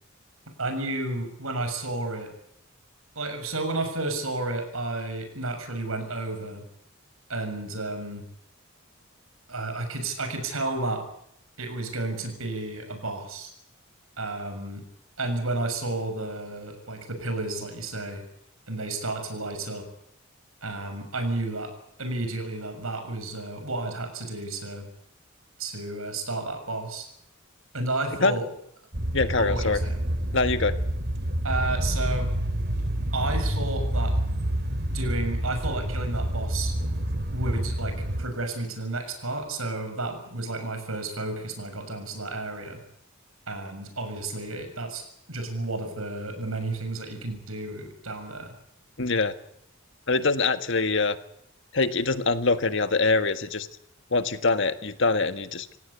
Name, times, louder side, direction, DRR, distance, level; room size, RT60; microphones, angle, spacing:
voice 1, 0.6-2.3 3.2-6.6 7.3-8.3 9.5-11.0 11.6-13.5 14.2-14.8 15.2-18.2 18.7-19.9 20.6-21.7 22.0-24.9 25.6-27.1 27.7-28.5 29.4-30.0 31.4-32.3 33.1-34.2 34.9-36.7 37.3-42.8 43.5-48.5, right 2 dB, 90° right, 7 dB, 6.9 m, -32 dB
sound 1, 28.9-38.2, right 1 dB, 50° right, 2.2 m, -28 dB
voice 2, 29.1-29.8 30.3-30.8 49.0-49.3 50.1-51.2 51.7-53.7 54.1-55.7, left 3 dB, 60° left, 10 dB, 1.6 m, -24 dB
27.0 x 17.0 x 8.4 m, 0.73 s
head